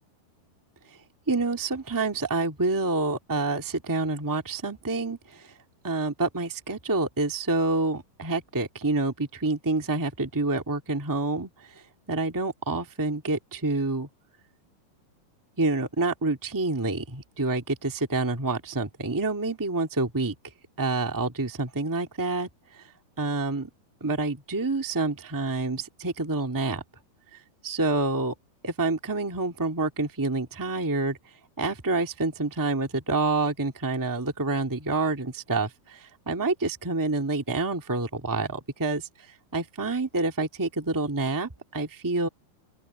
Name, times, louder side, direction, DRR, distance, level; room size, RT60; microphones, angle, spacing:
voice 1, 1.3-5.5 5.8-11.8 12.1-14.1 15.6-20.3 20.8-22.9 23.2-23.7 24.0-26.8 27.6-28.3 28.6-31.2 31.6-42.3, right 3 dB, 25° right, 0.4 m, -28 dB
open air
omnidirectional pair, 4.4 m